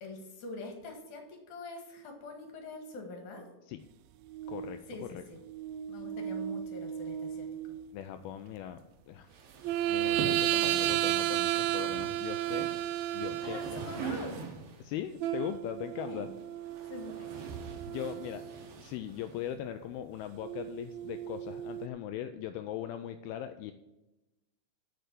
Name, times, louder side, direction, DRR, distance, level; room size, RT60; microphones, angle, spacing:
voice 1, 0.0-3.5 4.9-5.4 5.9-7.8 13.4-14.4 16.0-16.3 16.9-17.3, left 2 dB, 55° left, 3 dB, 2.9 m, -44 dB
sound 1, 4.3-4.8 5.4-7.8 9.6-14.3 15.2-18.7 20.4-21.9, right 13 dB, 90° right, 2.0 m, -33 dB
voice 2, 4.5-5.2 7.9-8.8 9.1-9.4 9.9-12.7 13.1-13.6 14.8-16.3 17.9-23.7, left 10 dB, 80° left, 8 dB, 2.3 m, -40 dB
sound 2, 9.3-14.9 16.0-19.5, right 5 dB, 70° right, 3.4 m, -43 dB
7.7 x 6.7 x 8.2 m, 0.99 s
omnidirectional pair, 4.7 m